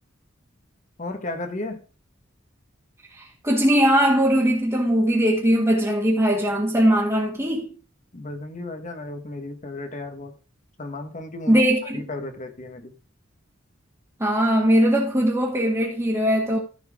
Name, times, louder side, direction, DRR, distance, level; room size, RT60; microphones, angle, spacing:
voice 1, 1.0-1.8 8.1-10.4 10.8-11.6 11.9-12.9, left 2 dB, 40° left, 1.5 m, -34 dB
voice 2, 3.2-7.7 11.5-12.0 14.2-16.6, equal, 15° right, 1.7 m, -20 dB
14.5 x 5.7 x 3.7 m
head